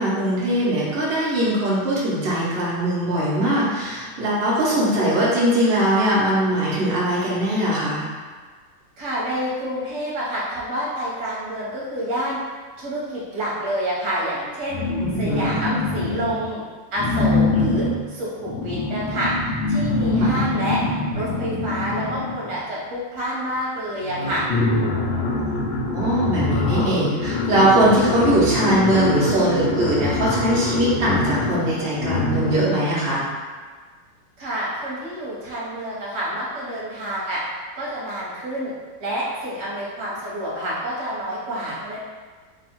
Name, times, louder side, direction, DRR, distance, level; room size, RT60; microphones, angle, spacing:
voice 1, 0.0-8.0 15.0-15.5 20.2-20.4 25.9-33.2, right 1 dB, 75° right, -7 dB, 0.5 m, -21 dB
voice 2, 9.0-12.4 12.8-14.8 15.2-16.6 16.9-19.3 19.7-20.8 21.1-24.4 34.4-37.4 37.7-38.7 39.0-42.0, equal, 40° right, -6 dB, 1.1 m, -28 dB
sound 1, 14.7-16.5 17.0-22.6 23.6-23.7 23.9-32.8, left 2 dB, 80° left, 1.4 m, -24 dB
3.5 x 2.3 x 4.4 m, 1.5 s
omnidirectional pair, 2.4 m